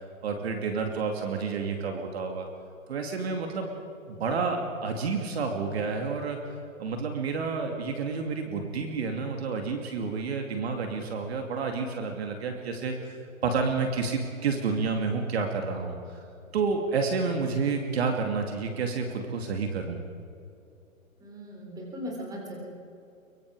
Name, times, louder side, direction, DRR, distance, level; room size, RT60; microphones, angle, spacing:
voice 1, 0.2-2.5 2.9-3.7 4.1-6.4 6.8-16.2 16.5-20.0, right 4 dB, 50° right, 3 dB, 2.6 m, -30 dB
voice 2, 21.2-22.6, equal, 10° right, -1 dB, 3.7 m, -38 dB
24.5 x 23.5 x 4.9 m, 2.6 s
hypercardioid pair, 150°, 41 cm